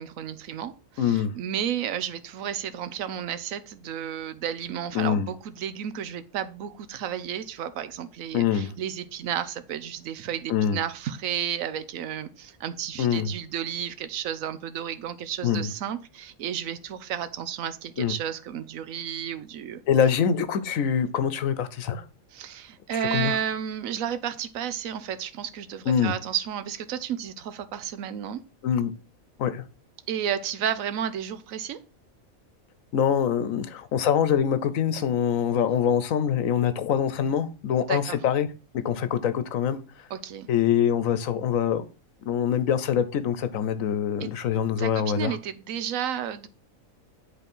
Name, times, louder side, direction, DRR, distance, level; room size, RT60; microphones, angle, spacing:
voice 1, 0.0-19.8 22.3-28.4 30.1-31.8 37.9-38.2 40.1-40.5 44.2-44.3 44.8-46.5, right 9 dB, 75° right, 12 dB, 1.1 m, -32 dB
voice 2, 1.0-1.3 4.9-5.3 8.3-8.7 10.5-10.8 13.0-13.3 15.4-15.7 18.0-18.1 19.9-22.0 23.1-23.4 25.9-26.1 28.6-28.9 29.4-29.6 32.9-38.5 38.7-39.8 40.5-41.8 42.3-45.4, left 8 dB, 75° left, 13 dB, 1.2 m, -24 dB
8.3 x 3.9 x 5.3 m, 0.34 s
omnidirectional pair, 1.4 m